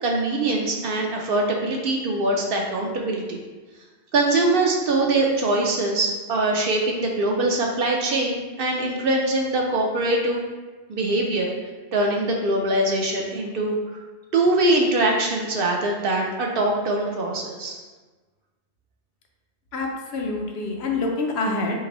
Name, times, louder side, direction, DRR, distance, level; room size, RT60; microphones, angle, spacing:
voice 1, 0.0-3.4 4.1-10.4 10.9-11.5 11.9-13.7 14.3-17.8, right 2 dB, 60° right, 0 dB, 0.7 m, -23 dB
voice 2, 19.7-21.8, left 3 dB, 70° left, 2 dB, 0.8 m, -26 dB
3.9 x 3.3 x 2.9 m, 1.3 s
omnidirectional pair, 1.2 m